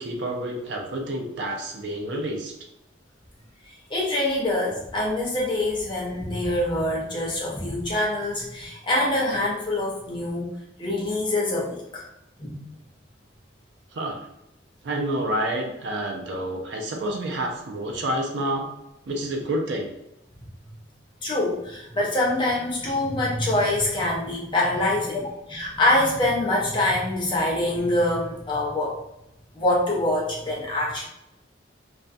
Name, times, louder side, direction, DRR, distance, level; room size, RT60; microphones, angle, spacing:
voice 1, 0.0-2.5 13.9-14.3 14.8-18.7 19.1-19.9, right 1 dB, 65° right, 1 dB, 0.5 m, -29 dB
voice 2, 3.6-10.5 10.8-12.1 12.4-12.6 21.2-28.9 29.5-31.1, left 1 dB, 25° left, -4 dB, 0.5 m, -25 dB
2.4 x 2.1 x 2.5 m, 0.86 s
head